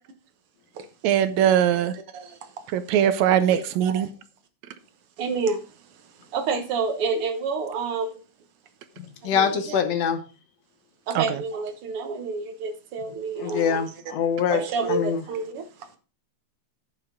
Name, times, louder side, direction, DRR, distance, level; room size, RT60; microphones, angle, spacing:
voice 1, 1.0-2.0 2.7-4.1 11.2-11.4, right 10 dB, 75° right, 1.9 m, -21 dB
voice 2, 2.1-2.5 3.5-4.1 5.2-5.6 6.3-8.2 9.2-9.8 11.1-13.8 14.5-15.6, right 4 dB, 60° right, 1.7 m, -29 dB
voice 3, 9.0-10.2 13.4-14.6 14.9-15.2, left 7 dB, 65° left, 2.0 m, -24 dB
9.6 x 7.9 x 3.7 m
omnidirectional pair, 3.5 m